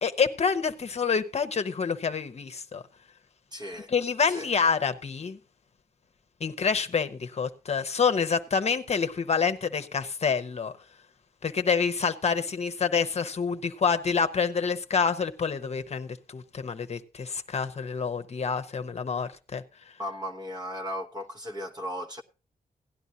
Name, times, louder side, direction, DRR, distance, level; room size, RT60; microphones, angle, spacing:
voice 1, 0.0-2.8 3.9-5.4 6.4-10.7 11.4-19.6, left 5 dB, 45° left, 0.9 m, -27 dB
voice 2, 3.5-3.9 4.3-4.5 20.0-22.2, equal, 25° right, 1.0 m, -36 dB
17.0 x 11.0 x 2.7 m
wide cardioid pair, 135°, 15 cm